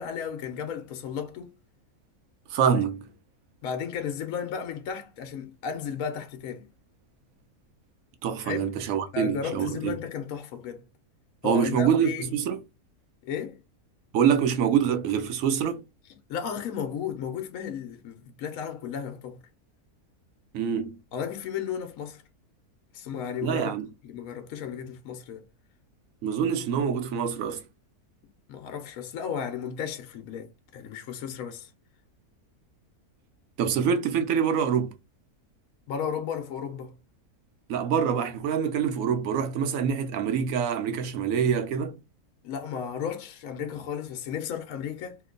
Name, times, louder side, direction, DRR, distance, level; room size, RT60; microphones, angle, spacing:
voice 1, 0.0-1.6 3.6-6.7 8.4-8.7 9.1-10.8 11.4-12.4 13.2-13.6 16.3-19.4 21.1-22.2 22.9-23.7 24.0-25.4 28.5-31.7 35.9-37.0 42.4-45.2, left 7 dB, 70° left, 1.0 m, -34 dB
voice 2, 2.5-3.1 8.2-9.9 11.4-12.6 14.1-15.8 20.5-21.0 23.4-23.9 26.2-27.6 33.6-34.9 37.7-42.0, right 7 dB, 65° right, 0.9 m, -25 dB
2.9 x 2.2 x 3.7 m
omnidirectional pair, 1.6 m